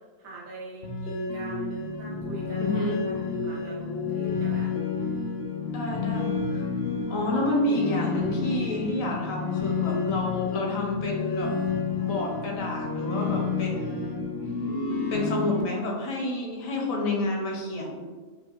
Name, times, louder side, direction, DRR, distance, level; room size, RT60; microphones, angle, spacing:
voice 1, 0.2-4.8, right 2 dB, 85° right, -6 dB, 1.4 m, -42 dB
sound 1, 0.8-15.6, left 5 dB, 55° left, 0.7 m, -30 dB
voice 2, 2.6-3.0 5.7-6.7 7.1-11.5 12.0-14.2 15.1-18.0, left 1 dB, 75° left, 0 dB, 1.1 m, -29 dB
4.4 x 2.4 x 2.3 m, 1.3 s
omnidirectional pair, 1.4 m